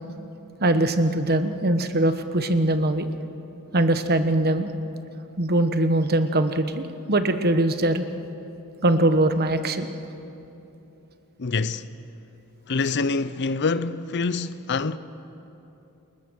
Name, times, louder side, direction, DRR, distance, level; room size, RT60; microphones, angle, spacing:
voice 1, 0.6-3.1 3.7-4.7 5.4-8.0 8.8-9.9, right 1 dB, 45° right, 1.1 m, -22 dB
voice 2, 11.4-11.8 12.7-15.0, left 4 dB, 50° left, 0.6 m, -25 dB
29.5 x 20.5 x 6.4 m
head